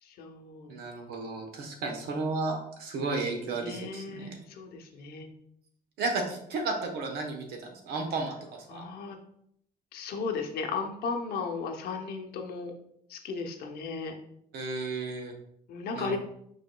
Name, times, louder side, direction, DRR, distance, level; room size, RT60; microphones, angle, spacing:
voice 1, 0.0-0.8 3.6-5.3 8.7-9.2 9.9-12.7 13.1-14.2 15.7-16.2, left 4 dB, 75° left, 3 dB, 0.8 m, -35 dB
voice 2, 0.7-4.4 6.0-8.8 14.5-15.3 15.9-16.2, right 3 dB, 85° right, 3 dB, 1.0 m, -33 dB
4.9 x 4.7 x 2.2 m, 0.72 s
cardioid pair, 165°, 16 cm